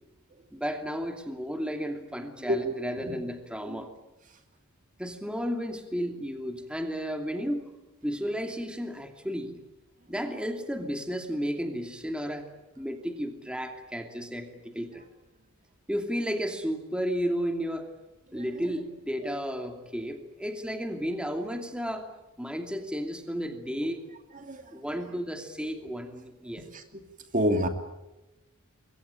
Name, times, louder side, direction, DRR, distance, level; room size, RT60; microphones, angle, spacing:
voice 1, 0.5-3.9 5.0-7.7 8.0-9.6 10.1-12.5 12.8-15.1 15.9-17.9 18.3-22.1 22.4-24.0 24.7-26.6, equal, 5° right, 5 dB, 2.7 m, -33 dB
voice 2, 2.5-3.2 3.7-3.9 18.3-18.4 19.2-19.3 24.4-24.7 25.8-25.9 26.7-27.0 27.3-27.7, equal, 40° right, 6 dB, 2.6 m, -29 dB
27.5 x 23.0 x 9.0 m, 0.97 s
head